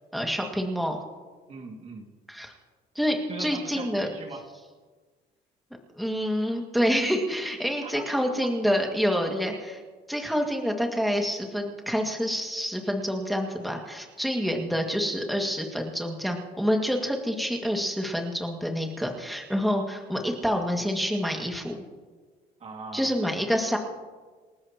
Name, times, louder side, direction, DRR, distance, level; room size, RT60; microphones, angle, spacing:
voice 1, 0.1-1.0 2.3-2.5 3.0-4.1 6.0-9.8 10.1-21.8 22.9-23.8, equal, ahead, 2 dB, 2.0 m, -27 dB
voice 2, 1.5-2.1 3.3-4.5 7.8-8.1 8.4-8.8 22.6-23.1, right 3 dB, 40° right, 2 dB, 2.2 m, -40 dB
28.5 x 13.5 x 3.0 m, 1.4 s
cardioid pair, 110°, 17 cm